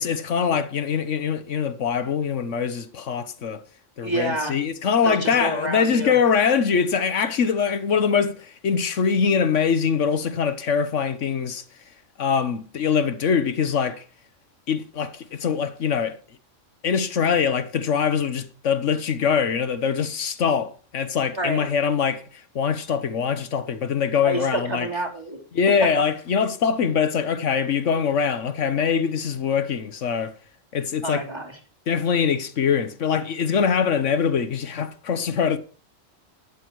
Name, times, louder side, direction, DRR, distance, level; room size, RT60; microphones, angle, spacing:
voice 1, 0.0-3.6 4.0-14.0 14.7-16.2 16.8-24.9 25.5-30.3 30.7-31.2 31.9-35.6, left 6 dB, 75° left, 1.3 m, -23 dB
voice 2, 4.0-4.5 5.0-6.2 21.4-21.7 24.2-25.4 31.0-31.5, right 2 dB, 20° right, 3.3 m, -28 dB
11.5 x 10.0 x 4.7 m
omnidirectional pair, 1.3 m